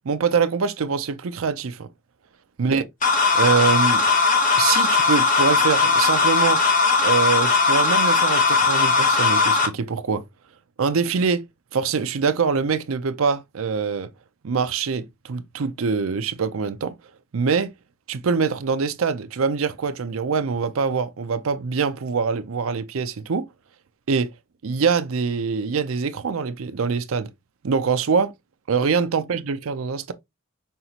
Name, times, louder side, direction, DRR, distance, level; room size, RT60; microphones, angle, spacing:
voice 1, 0.0-1.9 2.6-2.8 3.3-4.0 4.6-6.6 7.0-10.2 10.8-11.5 11.7-14.1 14.4-16.9 17.3-17.7 18.1-23.5 24.1-24.3 24.6-27.3 27.6-28.3 28.7-30.1, right 5 dB, 75° right, 0.5 m, -24 dB
sound 1, 3.0-9.7, left 4 dB, 40° left, 0.9 m, -18 dB
5.7 x 2.8 x 2.8 m
head